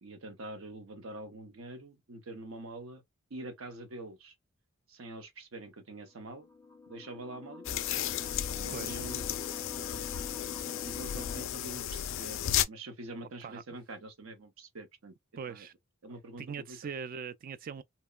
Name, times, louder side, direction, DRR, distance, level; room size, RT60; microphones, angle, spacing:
voice 1, 0.0-3.0 3.3-4.3 4.9-6.5 6.9-7.8 8.6-9.3 10.6-15.1 15.5-15.7 16.0-16.8, right 2 dB, 70° right, 0.7 m, -45 dB
sound 1, 6.2-11.4, left 4 dB, 10° left, 0.5 m, -46 dB
sound 2, 7.6-12.6, left 11 dB, 65° left, 0.4 m, -34 dB
voice 2, 15.4-15.7 16.4-17.8, right 6 dB, 45° right, 0.3 m, -41 dB
2.9 x 2.2 x 2.2 m
head